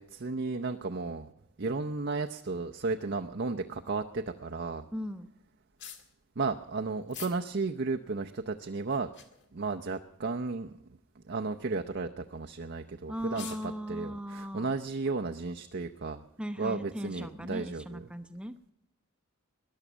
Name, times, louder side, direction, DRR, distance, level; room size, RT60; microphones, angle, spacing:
voice 1, 0.0-1.3 1.6-4.8 6.4-9.1 9.5-10.7 11.3-13.5 13.9-16.2 16.6-18.0, right 3 dB, 50° right, 4 dB, 0.6 m, -34 dB
voice 2, 4.9-5.3 13.1-14.7 16.4-18.5, equal, 5° right, 9 dB, 0.8 m, -38 dB
sound 1, 5.7-6.1 7.1-7.4 7.9-8.0 8.8-9.5 10.2-10.5 10.8-10.9 11.5-11.8 12.7-12.8 13.2-13.7, left 8 dB, 55° left, 1.9 m, -46 dB
21.0 x 11.0 x 6.2 m, 0.79 s
head